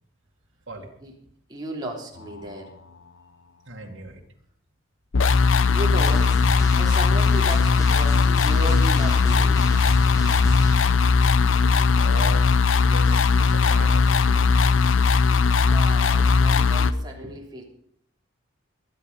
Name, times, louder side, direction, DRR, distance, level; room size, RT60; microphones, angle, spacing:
voice 1, 1.5-2.7 5.7-9.7 15.6-17.6, right 1 dB, 20° right, -1 dB, 3.1 m, -35 dB
voice 2, 3.7-4.2 11.9-14.7, right 2 dB, 70° right, 0 dB, 2.2 m, -39 dB
sound 1, 5.1-16.9, left 5 dB, 80° left, 0.7 m, -19 dB
Drum, 6.0-10.8, equal, 20° left, 2.8 m, -36 dB
21.0 x 9.8 x 5.4 m, 0.67 s
head